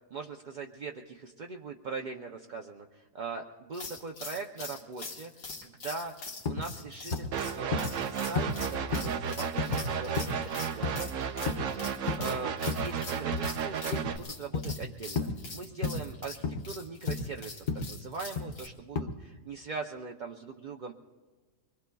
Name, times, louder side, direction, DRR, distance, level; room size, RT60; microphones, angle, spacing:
voice 1, 0.1-5.3 5.6-11.9 12.2-20.9, right 4 dB, 50° right, 2 dB, 0.5 m, -41 dB
sound 1, 3.7-18.7, left 3 dB, 85° left, 1.9 m, -44 dB
sound 2, 6.5-6.7 7.1-7.3 7.7-7.9 8.4-8.6 8.9-9.2 9.6-9.8 10.2-10.4 10.8-11.0 11.5-11.7 12.1-12.3 12.7-12.9 13.3-13.5 13.9-14.2 14.5-14.8 15.2-15.4 15.8-16.1 16.4-16.6 17.1-17.3 17.7-17.9 18.4-18.6 19.0-19.1, left 4 dB, 40° left, 0.8 m, -32 dB
sound 3, 7.3-14.2, right 7 dB, 70° right, 1.0 m, -33 dB
25.0 x 21.5 x 2.3 m, 1.3 s
omnidirectional pair, 1.4 m